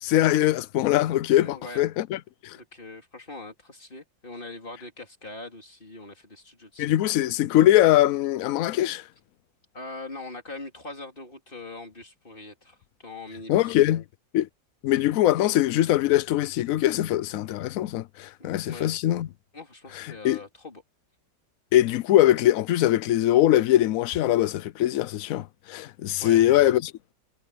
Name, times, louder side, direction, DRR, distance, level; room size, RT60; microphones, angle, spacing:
voice 1, 0.0-2.6 6.8-9.0 13.5-14.0 14.3-14.5 14.8-19.3 19.9-20.4 21.7-26.9, left 13 dB, 80° left, 0.7 m, -22 dB
voice 2, 1.4-1.8 2.5-7.1 9.7-13.8 18.4-18.9 19.5-20.8 24.1-24.2 26.2-26.5, left 2 dB, 25° left, 3.6 m, -42 dB
omnidirectional pair, 2.0 m